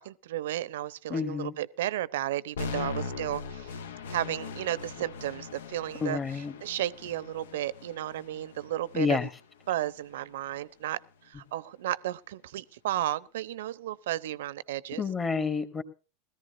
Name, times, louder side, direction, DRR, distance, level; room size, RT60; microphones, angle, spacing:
voice 1, 0.0-3.8 4.1-9.3 9.7-15.0, right 13 dB, 70° right, 0.6 m, -33 dB
voice 2, 1.1-1.5 6.0-6.5 8.9-9.3 15.0-15.8, left 5 dB, 25° left, 1.9 m, -29 dB
sound 1, 2.6-10.6, left 5 dB, 75° left, 0.7 m, -41 dB
20.0 x 14.0 x 2.6 m
hypercardioid pair, 85°, 0 cm